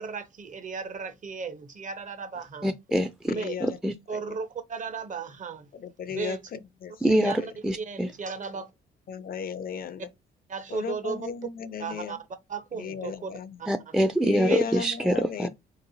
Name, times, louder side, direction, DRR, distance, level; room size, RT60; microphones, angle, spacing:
voice 1, 0.0-2.7 3.3-3.6 4.1-5.7 6.1-6.4 7.1-7.5 7.8-8.7 10.5-11.3 11.8-12.2 12.5-13.3 14.4-14.7, right 5 dB, 40° right, 0.7 m, -35 dB
voice 2, 2.6-3.3 3.6-3.9 7.0-8.1 13.7-15.5, equal, 5° right, 0.4 m, -25 dB
voice 3, 3.3-3.8 4.1-4.4 5.7-7.5 8.5-8.6 9.1-10.1 10.7-12.2 12.7-13.6 14.2-15.5, left 6 dB, 50° left, 0.5 m, -35 dB
3.3 x 2.9 x 2.7 m
supercardioid pair, 65°, 19 cm